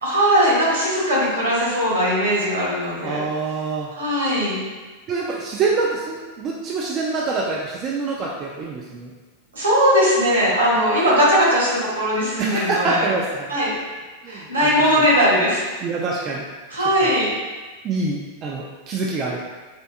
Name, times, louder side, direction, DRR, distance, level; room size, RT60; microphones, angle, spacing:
voice 1, 0.0-3.2 3.9-4.6 9.5-13.0 13.5-13.7 14.3-15.6 16.7-17.3, equal, 75° right, -7 dB, 1.3 m, -19 dB
voice 2, 3.0-3.9 5.1-9.1 12.4-13.5 14.2-14.7 15.8-16.5 17.0-17.1 17.8-19.4, right 3 dB, 30° right, -2 dB, 0.3 m, -25 dB
4.3 x 2.6 x 2.3 m, 1.3 s
figure-of-eight pair, 90°, 0 cm